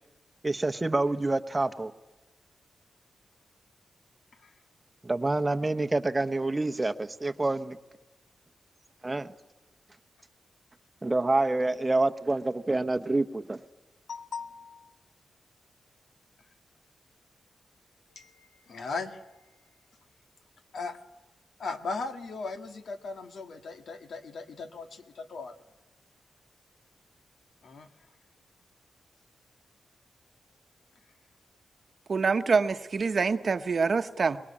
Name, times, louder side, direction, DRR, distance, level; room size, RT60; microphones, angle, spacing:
voice 1, 0.4-1.9 5.0-7.8 9.0-9.3 11.0-13.6, right 2 dB, 20° right, 10 dB, 0.9 m, -27 dB
voice 2, 14.1-14.9 18.2-19.2 20.7-21.0 21.6-25.5 27.6-27.9, left 4 dB, 75° left, 6 dB, 1.8 m, -38 dB
voice 3, 32.1-34.4, right 4 dB, 50° right, 9 dB, 1.0 m, -25 dB
24.0 x 20.5 x 8.6 m, 1.1 s
wide cardioid pair, 100°, 0 cm